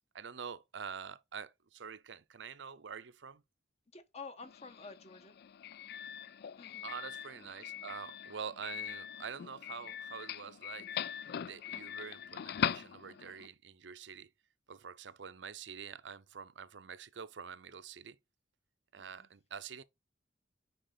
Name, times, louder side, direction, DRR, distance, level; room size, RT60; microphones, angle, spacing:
voice 1, 0.1-3.4 6.8-14.3 14.7-18.2 18.9-19.8, right 6 dB, 70° right, 0.6 m, -46 dB
voice 2, 3.9-5.3 6.6-6.9 18.9-19.3, left 4 dB, 35° left, 1.1 m, -50 dB
Doorbell, 4.4-13.5, left 9 dB, 60° left, 0.3 m, -41 dB
6.4 x 5.0 x 3.9 m
head